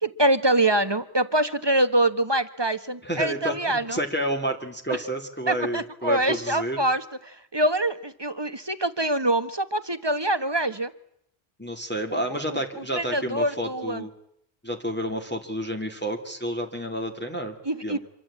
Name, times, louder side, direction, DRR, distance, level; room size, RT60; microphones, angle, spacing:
voice 1, 0.0-4.0 4.9-5.0 5.5-10.9 12.1-12.6 12.9-14.0 17.6-18.0, right 1 dB, 25° right, 12 dB, 1.2 m, -25 dB
voice 2, 3.0-6.8 11.6-14.1 14.6-17.5 17.8-18.0, equal, 10° left, 2 dB, 2.5 m, -30 dB
26.5 x 23.5 x 8.6 m, 0.72 s
omnidirectional pair, 1.1 m